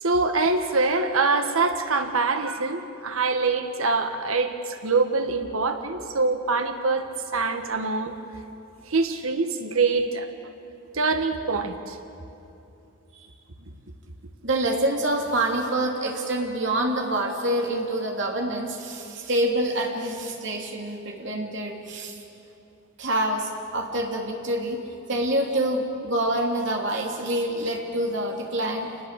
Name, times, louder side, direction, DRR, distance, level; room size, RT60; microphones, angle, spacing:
voice 1, 0.0-8.2 8.8-10.3 10.9-12.0, right 3 dB, 90° right, 7 dB, 1.7 m, -24 dB
voice 2, 14.4-22.2 23.0-24.8 25.1-28.9, right 1 dB, 60° right, 0 dB, 3.2 m, -26 dB
28.0 x 19.5 x 7.6 m, 2.8 s
head